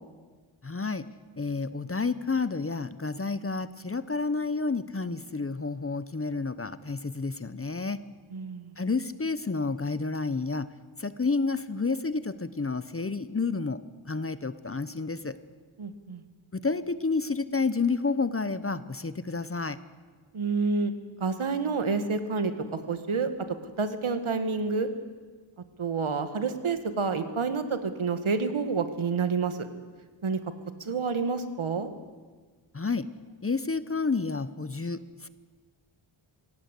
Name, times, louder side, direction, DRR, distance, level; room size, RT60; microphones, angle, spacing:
voice 1, 0.6-1.1 1.4-8.0 8.8-10.7 11.0-13.8 14.1-15.4 16.5-19.8 32.7-33.1 33.4-35.3, left 4 dB, 25° left, 14 dB, 0.8 m, -30 dB
voice 2, 8.3-8.7 15.8-16.2 20.3-20.9 21.2-23.3 23.8-24.9 25.8-29.7 30.2-30.4 30.8-31.9, right 4 dB, 70° right, 9 dB, 1.9 m, -28 dB
26.5 x 17.0 x 8.4 m, 1.4 s
wide cardioid pair, 110°, 50 cm